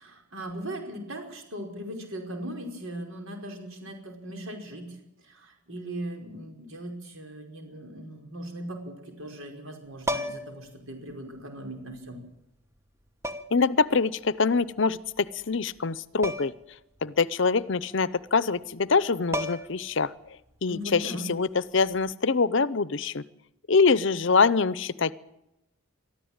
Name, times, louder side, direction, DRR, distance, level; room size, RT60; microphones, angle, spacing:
voice 1, 0.0-5.0 5.2-12.2 20.6-21.3, right 1 dB, 75° right, 3 dB, 5.1 m, -39 dB
sound 1, 10.0-10.6 11.9-12.0 13.2-13.7 16.2-16.7 17.0-17.1 18.9-19.0 19.3-19.9 21.9-22.1, equal, 10° right, 1.0 m, -32 dB
voice 2, 13.5-16.5 17.0-20.1 20.6-21.5 21.7-23.2 23.7-25.1, left 4 dB, 60° left, 18 dB, 0.7 m, -24 dB
23.5 x 13.5 x 8.9 m, 0.90 s
head